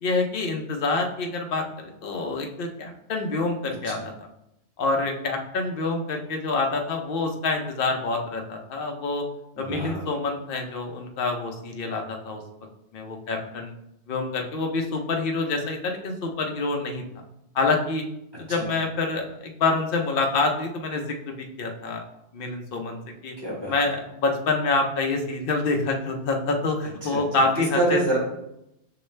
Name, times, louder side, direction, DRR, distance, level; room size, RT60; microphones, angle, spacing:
voice 1, 0.0-4.3 4.8-9.3 9.6-12.4 12.9-13.7 14.1-17.0 17.5-18.0 18.4-22.0 22.3-23.3 23.7-28.0, left 3 dB, 55° left, 2 dB, 0.8 m, -27 dB
voice 2, 9.6-10.1 18.5-18.7 23.4-23.8 27.0-27.5 27.7-28.2, right 2 dB, 20° right, -6 dB, 1.7 m, -27 dB
6.6 x 2.3 x 3.2 m, 0.84 s
omnidirectional pair, 1.3 m